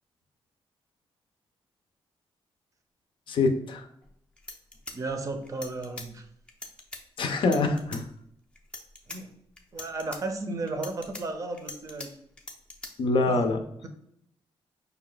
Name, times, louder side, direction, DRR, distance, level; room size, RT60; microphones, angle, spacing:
voice 1, 3.3-3.9 7.2-8.0 13.0-13.6, left 3 dB, 60° left, 6 dB, 0.5 m, -25 dB
sound 1, 4.0-4.1 4.4-6.1 6.5-7.0 7.4-8.0 8.6-9.2 9.6-10.2 10.7-12.1 12.4-12.9, left 2 dB, 10° left, 0.5 m, -41 dB
voice 2, 4.9-6.2 9.1-9.3 9.7-12.2 13.3-13.4, right 3 dB, 35° right, 6 dB, 0.5 m, -34 dB
5.2 x 2.3 x 3.8 m, 0.70 s
wide cardioid pair, 175°, 10 cm